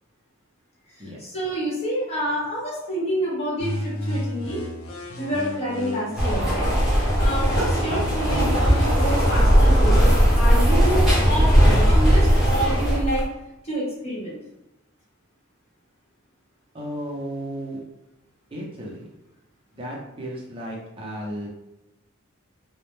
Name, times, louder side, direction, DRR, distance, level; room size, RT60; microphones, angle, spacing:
voice 1, 1.2-4.6 5.2-6.7 7.2-13.2 13.6-14.4, right 1 dB, 30° left, -6 dB, 1.0 m, -28 dB
sound 1, 3.6-6.6 7.0-10.0, left 1 dB, 80° left, 0.5 m, -33 dB
sound 2, 6.2-13.0, equal, ahead, 0.9 m, -19 dB
sound 3, 8.1-13.3, equal, 85° right, 0.8 m, -22 dB
voice 2, 16.7-17.8 18.5-19.1 19.7-21.5, equal, 25° right, -4 dB, 0.5 m, -34 dB
2.1 x 2.1 x 3.0 m, 0.94 s
head